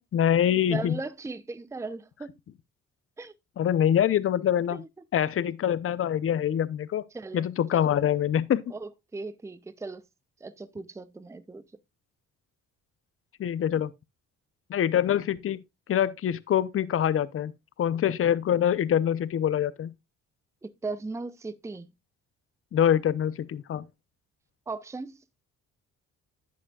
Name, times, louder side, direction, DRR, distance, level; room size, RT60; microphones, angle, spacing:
voice 1, 0.1-1.0 3.6-4.8 5.1-7.0 7.3-8.7 13.4-13.9 14.7-15.6 15.9-17.5 17.8-19.9 22.7-23.8, left 10 dB, 45° left, 0.7 m, -25 dB
voice 2, 0.7-2.3 3.2-3.3 4.7-4.9 7.1-7.5 7.7-8.0 8.7-10.0 10.4-11.6 20.6-21.9 24.7-25.2, right 3 dB, 10° right, 0.6 m, -37 dB
11.5 x 8.4 x 2.3 m
cardioid pair, 90°, 30 cm